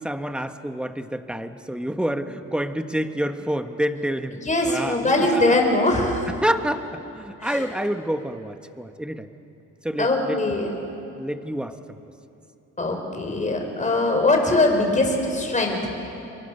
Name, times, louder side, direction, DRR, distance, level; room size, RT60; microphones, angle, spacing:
voice 1, 0.0-4.4 4.6-5.6 6.4-9.3 9.8-10.4 11.1-12.0, right 1 dB, 5° right, 8 dB, 1.3 m, -28 dB
voice 2, 4.4-6.3 7.4-7.7 10.0-10.7 12.8-15.9, left 2 dB, 25° left, 2 dB, 5.6 m, -22 dB
29.5 x 23.5 x 6.8 m, 2.8 s
cardioid pair, 90°, 30 cm